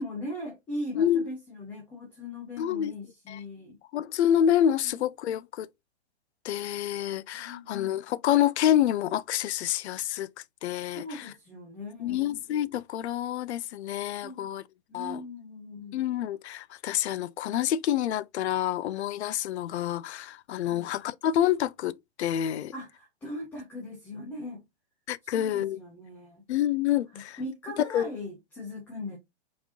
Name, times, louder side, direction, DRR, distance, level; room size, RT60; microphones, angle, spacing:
voice 1, 0.0-3.8 4.8-5.1 7.3-7.9 10.9-12.3 14.2-14.5 14.9-16.0 20.6-20.9 22.7-24.6 25.2-26.5 27.1-29.2, left 1 dB, 5° left, 0.5 m, -40 dB
voice 2, 0.9-1.3 2.6-2.9 3.3-3.4 3.9-5.7 6.4-10.3 10.6-11.3 12.0-14.6 14.9-15.2 15.9-22.7 25.1-25.8 26.5-27.4 27.8-28.1, left 11 dB, 80° left, 0.5 m, -27 dB
4.5 x 4.2 x 2.7 m
hypercardioid pair, 170°, 33 cm